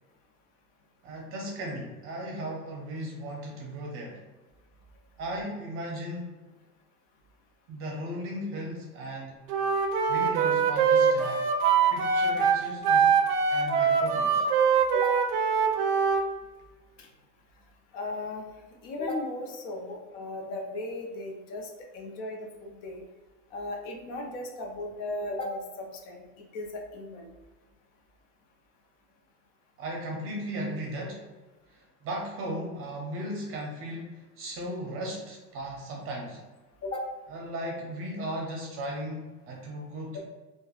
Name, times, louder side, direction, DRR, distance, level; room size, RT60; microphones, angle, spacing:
voice 1, 1.0-4.2 5.2-6.4 7.7-9.4 10.1-11.5 11.9-13.1 13.5-14.4 29.8-31.2 31.7-36.4 37.3-40.2, right 1 dB, 30° right, -1 dB, 0.6 m, -36 dB
Wind instrument woodwind instrument, 9.5-16.2, right 6 dB, 80° right, 0.6 m, -23 dB
voice 2, 17.9-18.4 18.8-21.7 21.9-23.0 23.5-26.2 26.5-27.3 36.8-37.1 40.1-40.2, left 2 dB, 55° left, 1 dB, 0.6 m, -36 dB
3.2 x 2.1 x 2.3 m, 1.2 s
hypercardioid pair, 120°, 45 cm